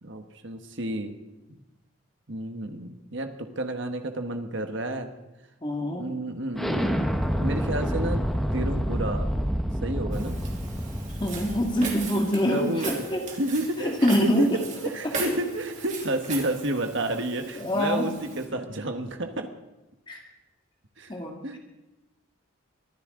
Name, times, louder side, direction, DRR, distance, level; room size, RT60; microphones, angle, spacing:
voice 1, 0.0-1.2 1.5-1.6 2.3-5.1 5.8-8.2 8.5-9.3 9.8-10.4 12.4-13.0 13.4-14.5 14.8-19.5 21.0-21.1 21.4-21.6, right 1 dB, 60° right, 5 dB, 1.4 m, -31 dB
voice 2, 5.6-6.1 11.2-13.2 13.8-14.6 15.2-15.3 17.6-18.1 20.1-20.2 21.1-21.6, equal, 20° left, 1 dB, 2.1 m, -25 dB
Explosion, 6.5-12.1, equal, ahead, 1.1 m, -28 dB
Walk footsteps, 10.1-18.5, right 4 dB, 35° right, 3.4 m, -39 dB
23.5 x 14.5 x 3.9 m, 1.0 s
head